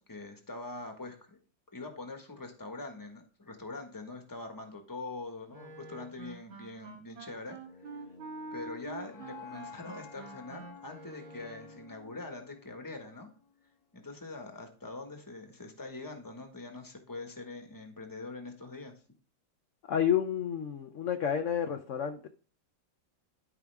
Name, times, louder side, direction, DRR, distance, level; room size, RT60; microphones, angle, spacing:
voice 1, 0.0-1.4 1.7-8.0 8.5-13.3 13.9-18.9, left 2 dB, 10° left, 1.2 m, -43 dB
Wind instrument woodwind instrument, 5.5-11.9, right 3 dB, 90° right, 2.3 m, -47 dB
sound 1, 7.6-13.7, left 6 dB, 85° left, 2.1 m, -52 dB
voice 2, 19.9-22.3, left 9 dB, 60° left, 0.8 m, -30 dB
12.0 x 5.1 x 3.5 m
omnidirectional pair, 2.1 m